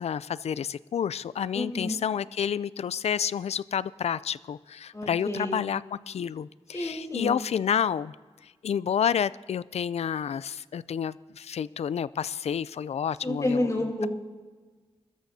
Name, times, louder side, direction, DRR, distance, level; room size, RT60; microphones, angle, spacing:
voice 1, 0.0-8.1 8.6-13.7, left 8 dB, 80° left, 19 dB, 0.4 m, -29 dB
voice 2, 1.5-2.0 4.9-5.6 6.7-7.3 13.2-14.1, left 1 dB, 30° left, 0 dB, 4.9 m, -29 dB
23.0 x 13.5 x 2.8 m, 1.4 s
cardioid pair, 60°, 11 cm